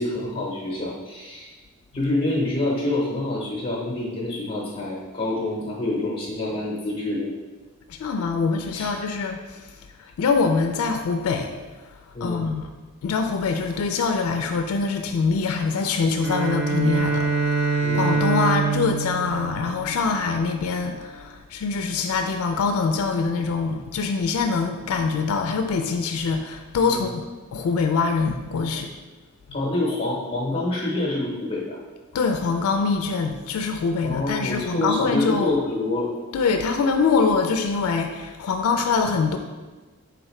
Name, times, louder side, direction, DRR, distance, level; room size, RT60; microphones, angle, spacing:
voice 1, 0.0-1.5 1.9-7.3 8.7-8.9 12.1-12.4 17.8-18.1 26.9-27.1 29.5-31.8 34.0-36.1, left 2 dB, 25° left, -4 dB, 0.8 m, -27 dB
voice 2, 7.9-12.7 13.0-27.2 27.5-28.9 29.5-29.6 32.1-35.6 36.3-39.4, left 4 dB, 85° left, 5 dB, 0.3 m, -24 dB
Bowed string instrument, 16.1-20.5, right 4 dB, 60° right, 0.4 m, -25 dB
4.7 x 3.4 x 3.1 m, 1.3 s
head